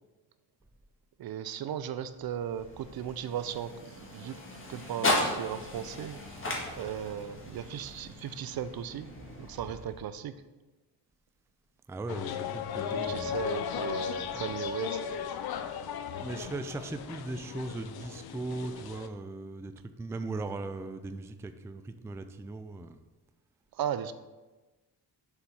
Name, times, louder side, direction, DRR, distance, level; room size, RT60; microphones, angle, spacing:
voice 1, 1.2-4.4 4.7-6.2 6.8-9.1 9.4-10.3 12.9-15.2 23.7-24.1, right 9 dB, 60° right, 12 dB, 0.6 m, -36 dB
sound 1, 2.0-10.3, left 1 dB, 30° left, 1.7 m, -36 dB
voice 2, 11.9-13.3 14.3-14.4 16.2-23.0, right 2 dB, 5° right, 8 dB, 0.3 m, -38 dB
sound 2, 12.1-19.1, left 7 dB, 65° left, 0.6 m, -36 dB
6.9 x 4.3 x 5.5 m, 1.2 s
cardioid pair, 90°, 41 cm